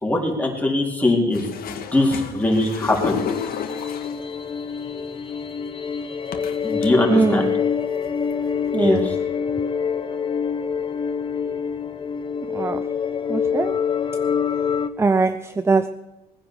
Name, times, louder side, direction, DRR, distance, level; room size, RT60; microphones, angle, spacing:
voice 1, 0.0-3.2 6.6-7.4 8.8-9.2, left 1 dB, 10° left, -1 dB, 4.2 m, -21 dB
sound 1, 1.3-4.3 5.3-5.4 6.3-6.9 7.5-7.6 7.9-8.3 9.0-9.1, left 8 dB, 60° left, 1.8 m, -32 dB
sound 2, 3.0-14.9, left 6 dB, 30° left, 1.1 m, -26 dB
voice 2, 7.1-7.6 8.7-9.0 12.5-12.9 13.3-13.8 15.0-15.9, right 3 dB, 15° right, 12 dB, 0.6 m, -21 dB
20.0 x 10.0 x 6.5 m, 1.0 s
cardioid pair, 110°, 17 cm